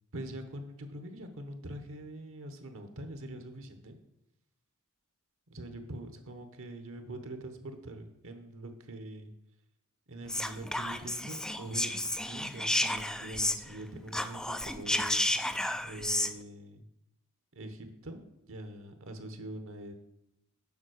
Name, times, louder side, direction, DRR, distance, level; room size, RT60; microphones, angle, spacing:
voice 1, 0.1-4.0 5.5-9.3 10.1-15.6 15.9-16.8 17.5-19.9, right 1 dB, 65° right, 7 dB, 1.1 m, -44 dB
Whispering, 10.3-13.8 14.1-16.3, left 1 dB, 5° left, 0.3 m, -32 dB
7.2 x 5.4 x 6.4 m, 0.86 s
head